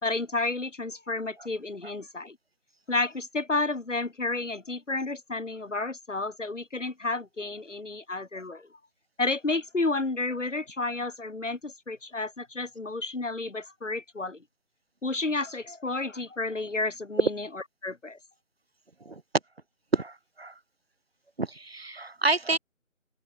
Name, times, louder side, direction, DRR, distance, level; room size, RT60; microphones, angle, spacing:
voice 1, 0.0-2.4 2.9-8.7 9.2-14.4 15.0-17.5 17.8-18.2, left 3 dB, 60° left, 3.5 m, -31 dB
voice 2, 19.9-20.5 21.4-22.6, right 3 dB, 45° right, 3.8 m, -29 dB
open air
figure-of-eight pair, 175°, 41 cm